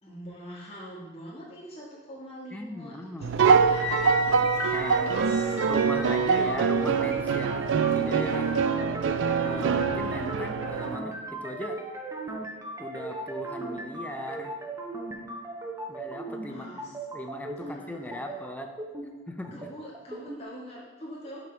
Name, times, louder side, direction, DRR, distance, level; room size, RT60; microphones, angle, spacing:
voice 1, 0.0-3.9 4.6-5.6 6.2-6.5 16.5-16.9 17.6-18.4 19.5-21.4, equal, 30° left, -6 dB, 1.7 m, -43 dB
voice 2, 2.5-3.3 4.7-5.0 5.6-8.6 9.3-11.8 12.8-14.5 15.9-18.7 19.3-19.6, left 1 dB, 10° left, 4 dB, 0.5 m, -38 dB
sound 1, 3.2-11.0, right 6 dB, 65° right, 0.4 m, -24 dB
Wind instrument woodwind instrument, 3.7-6.5, left 4 dB, 70° left, 1.8 m, -35 dB
sound 2, 4.4-20.4, right 2 dB, 15° right, 0.8 m, -38 dB
6.0 x 5.4 x 4.4 m, 1.1 s
head